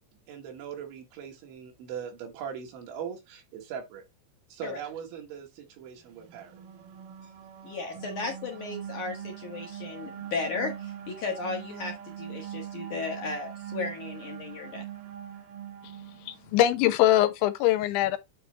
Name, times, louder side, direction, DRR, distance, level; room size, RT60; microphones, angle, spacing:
voice 1, 0.3-4.0 4.5-6.6, right 7 dB, 85° right, 4.4 m, -40 dB
sound 1, 6.2-16.7, right 10 dB, 70° right, 2.2 m, -42 dB
voice 2, 7.6-14.9, left 4 dB, 65° left, 2.0 m, -35 dB
voice 3, 16.3-18.2, left 13 dB, 85° left, 3.2 m, -22 dB
9.9 x 3.3 x 4.5 m
omnidirectional pair, 5.2 m